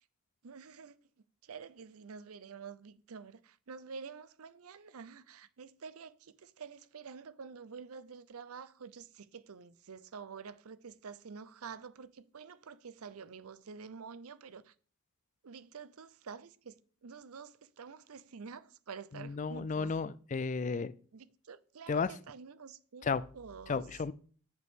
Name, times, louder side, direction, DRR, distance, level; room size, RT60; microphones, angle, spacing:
voice 1, 0.4-1.0 1.4-14.7 15.4-19.9 21.1-23.9, right 5 dB, 80° right, 0.6 m, -48 dB
voice 2, 19.1-20.9 21.9-22.1 23.0-23.2 23.7-24.1, left 5 dB, 35° left, 0.3 m, -33 dB
8.2 x 8.1 x 3.6 m
head